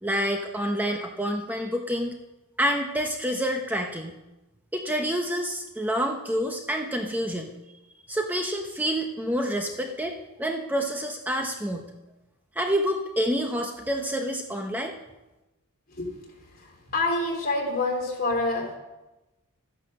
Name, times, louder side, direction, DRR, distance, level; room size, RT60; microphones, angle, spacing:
voice 1, 0.0-2.1 2.6-4.2 4.7-7.5 8.1-11.9 12.6-14.9, equal, 10° right, 3 dB, 0.8 m, -28 dB
voice 2, 16.9-18.8, left 2 dB, 45° left, 0 dB, 3.2 m, -26 dB
12.5 x 10.0 x 6.5 m, 1.0 s
head